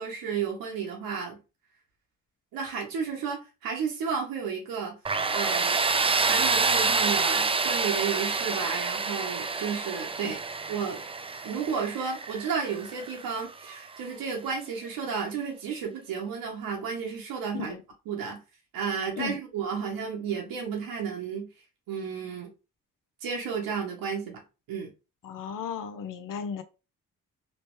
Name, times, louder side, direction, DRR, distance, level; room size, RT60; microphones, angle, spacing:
voice 1, 0.0-1.4 2.5-5.0 5.3-5.8 6.1-10.4 10.7-11.0 11.4-17.7 18.1-18.4 18.7-21.5 21.9-22.5 23.2-24.4 24.7-24.9, right 6 dB, 90° right, 0.9 m, -32 dB
Tools, 5.1-13.8, right 4 dB, 15° right, 0.4 m, -28 dB
voice 2, 25.2-26.6, left 7 dB, 70° left, 0.7 m, -35 dB
3.2 x 2.9 x 3.0 m
supercardioid pair, 50°, 34 cm